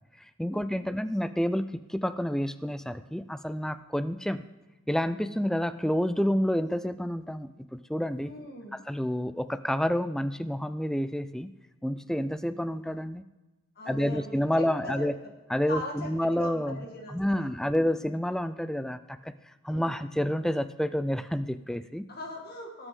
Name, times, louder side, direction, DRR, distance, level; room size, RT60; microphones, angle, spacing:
voice 1, 0.4-4.4 4.9-8.3 8.9-11.5 11.8-13.2 13.9-15.1 15.5-19.3 19.6-22.1, equal, 5° left, 12 dB, 0.4 m, -29 dB
voice 2, 8.2-8.8 13.7-15.1 15.7-16.1 16.4-17.9 19.7-20.0 22.1-22.9, left 2 dB, 50° left, 1 dB, 1.8 m, -40 dB
19.5 x 8.1 x 3.8 m, 1.1 s
head